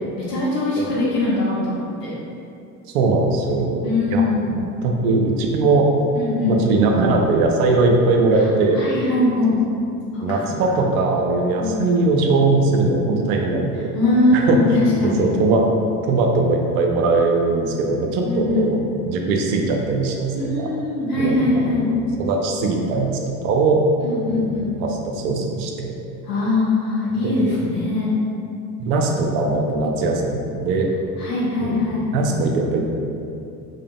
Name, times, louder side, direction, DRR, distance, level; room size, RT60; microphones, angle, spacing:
voice 1, 0.2-2.1 3.8-4.6 6.1-6.6 8.3-8.4 8.7-9.6 10.1-10.8 11.6-11.8 13.9-15.3 18.2-18.7 20.3-21.9 24.0-24.7 26.2-28.1 31.2-32.1, left 2 dB, 90° left, -7 dB, 1.1 m, -21 dB
voice 2, 2.9-3.8 4.1-4.2 4.6-5.9 6.4-8.8 10.2-13.9 14.3-14.6 15.0-15.7 16.1-20.7 21.1-21.9 22.2-23.1 23.4-23.8 24.3-24.5 24.8-25.9 27.2-27.6 28.8-30.9 31.6-31.8 32.1-32.9, right 3 dB, 75° right, 1 dB, 0.6 m, -20 dB
5.0 x 2.9 x 2.2 m, 2.6 s
hypercardioid pair, 55°, 46 cm